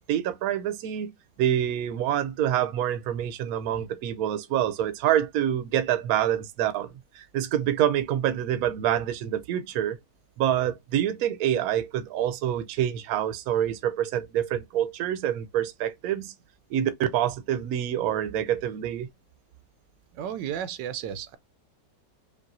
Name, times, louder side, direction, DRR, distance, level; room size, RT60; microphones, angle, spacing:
voice 1, 0.1-1.1 1.4-6.9 7.1-10.0 10.4-16.3 16.7-19.1, right 10 dB, 65° right, 1.0 m, -26 dB
voice 2, 20.1-21.4, right 9 dB, 90° right, 1.3 m, -33 dB
5.4 x 2.5 x 2.6 m
omnidirectional pair, 1.9 m